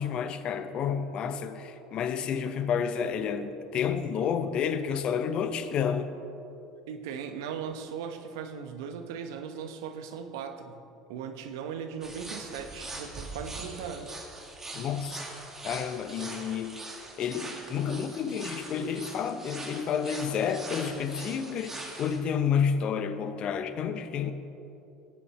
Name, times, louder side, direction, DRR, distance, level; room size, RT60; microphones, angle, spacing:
voice 1, 0.0-6.1 14.7-15.2 15.6-16.9 17.2-24.3, left 7 dB, 45° left, 0.8 m, -30 dB
voice 2, 6.9-10.8 11.1-14.3, right 7 dB, 70° right, 1.0 m, -38 dB
sound 1, 12.0-22.2, right 2 dB, 20° right, 2.4 m, -42 dB
19.0 x 8.4 x 4.2 m
hypercardioid pair, 70°, 2 cm